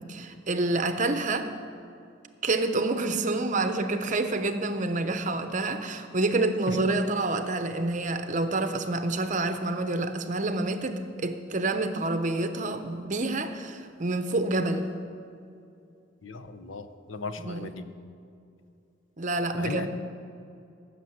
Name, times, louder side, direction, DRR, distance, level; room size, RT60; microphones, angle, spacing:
voice 1, 0.0-1.5 2.4-14.9 17.4-17.8 19.2-19.9, right 2 dB, 40° right, 8 dB, 0.8 m, -28 dB
voice 2, 16.2-17.8 19.5-19.9, left 3 dB, 85° left, 10 dB, 0.8 m, -36 dB
17.0 x 6.8 x 7.9 m, 2.6 s
head